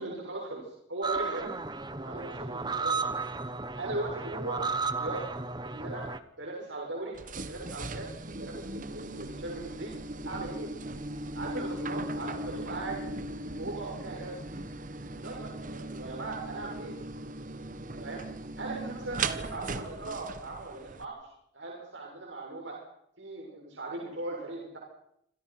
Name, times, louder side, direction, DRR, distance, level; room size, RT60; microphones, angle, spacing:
voice 1, 0.0-1.5 2.0-3.2 3.8-4.6 5.0-5.2 5.6-6.0 6.4-7.2 7.5-8.1 8.4-9.9 10.3-10.7 11.3-13.0 13.6-14.4 15.1-17.0 18.0-18.2 18.6-21.2 21.5-22.8 23.2-24.8, right 2 dB, 80° right, -1 dB, 7.1 m, -38 dB
sound 1, 1.0-6.2, right 4 dB, 25° right, 1.2 m, -34 dB
sound 2, 7.1-21.0, right 2 dB, 45° right, 1.4 m, -38 dB
28.0 x 26.0 x 6.1 m, 0.74 s
head